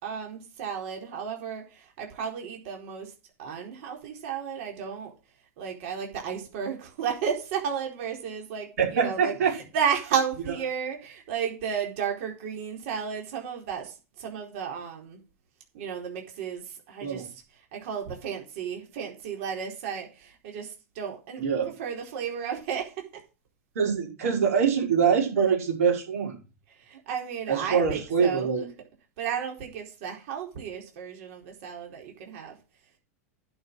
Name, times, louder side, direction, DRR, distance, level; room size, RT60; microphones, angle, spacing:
voice 1, 0.0-3.1 3.4-5.1 5.6-15.2 15.7-23.2 26.7-28.7 29.2-32.6, right 7 dB, 60° right, 1 dB, 4.3 m, -33 dB
voice 2, 8.8-9.5 17.0-17.3 21.4-21.7 23.8-26.3 27.5-28.6, right 6 dB, 75° right, 1 dB, 5.5 m, -24 dB
11.0 x 6.5 x 6.1 m, 0.32 s
hypercardioid pair, 115°, 8 cm